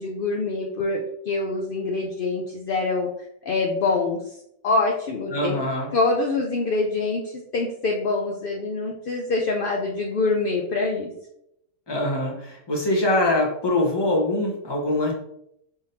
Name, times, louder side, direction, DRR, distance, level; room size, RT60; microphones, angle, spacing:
voice 1, 0.0-3.1 3.5-5.6 5.9-11.1, left 3 dB, 60° left, 0 dB, 0.6 m, -25 dB
voice 2, 5.3-5.9 11.9-15.1, left 1 dB, 20° left, -2 dB, 1.0 m, -23 dB
5.1 x 3.8 x 2.7 m, 0.78 s
omnidirectional pair, 1.5 m